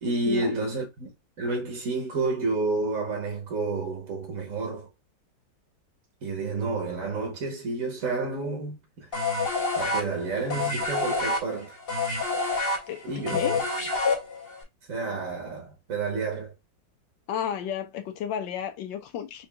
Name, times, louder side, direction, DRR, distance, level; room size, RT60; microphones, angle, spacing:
voice 1, 0.0-1.1 1.4-4.9 6.2-9.1 9.8-11.7 13.0-13.5 14.9-16.5, right 3 dB, 50° right, 1.3 m, -30 dB
sound 1, 9.1-14.6, left 3 dB, 40° left, 0.9 m, -27 dB
voice 2, 12.9-13.6 17.3-19.5, left 9 dB, 80° left, 1.4 m, -33 dB
4.8 x 2.8 x 2.2 m
omnidirectional pair, 2.0 m